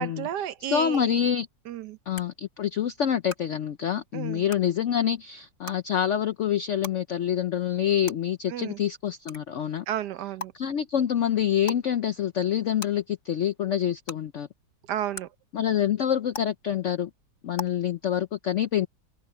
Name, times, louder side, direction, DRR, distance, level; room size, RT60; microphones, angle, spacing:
voice 1, 0.0-1.2 1.7-2.0 4.1-4.4 8.5-8.8 9.9-10.5 14.9-15.3, right 11 dB, 70° right, 1.2 m, -32 dB
voice 2, 0.7-1.5 2.1-9.8 10.5-14.5 15.5-17.1 17.4-18.9, left 9 dB, 70° left, 0.7 m, -26 dB
sound 1, 0.9-1.0 2.2-2.3 3.3-3.4 4.5-4.6 5.7-5.8 6.8-6.9 8.1-8.2 9.3-9.4 10.4-10.5 11.6-11.8 12.8-12.9 14.1-14.2 15.1-15.2 16.3-16.4 17.6-17.7, left 2 dB, 40° left, 4.8 m, -36 dB
omnidirectional pair, 2.0 m